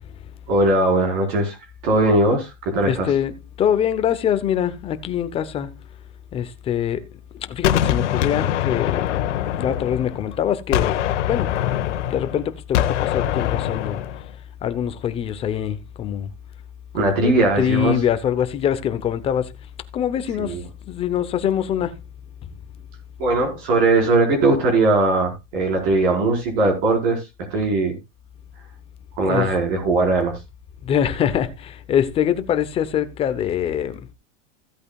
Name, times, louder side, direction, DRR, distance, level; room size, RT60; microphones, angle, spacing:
voice 1, 0.5-1.6 1.8-3.1 16.9-17.9 20.4-20.6 23.2-27.9 29.2-30.4, right 2 dB, 50° right, 4.8 m, -19 dB
voice 2, 2.8-5.7 6.3-7.0 7.4-9.1 9.5-11.5 12.0-14.0 14.6-16.3 16.9-19.5 19.9-20.6 20.9-21.9 29.2-29.5 30.8-34.0, left 9 dB, 15° left, 0.7 m, -24 dB
Gunshot gunfire, 7.6-10.3 10.7-14.3, left 11 dB, 70° left, 1.4 m, -23 dB
16.0 x 8.5 x 2.3 m
supercardioid pair, 160°, 37 cm